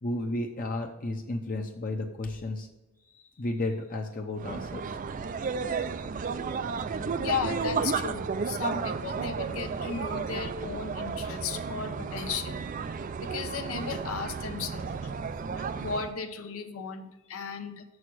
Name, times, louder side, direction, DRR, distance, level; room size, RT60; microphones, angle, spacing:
voice 1, 0.0-2.7 3.1-4.8 6.1-6.2, left 2 dB, 40° left, 2 dB, 0.7 m, -33 dB
sound 1, 4.4-16.1, right 5 dB, 40° right, 0.4 m, -33 dB
voice 2, 7.0-12.6 13.2-15.1 15.5-17.8, left 5 dB, 80° left, 6 dB, 0.8 m, -35 dB
7.1 x 6.3 x 6.1 m, 1.0 s
head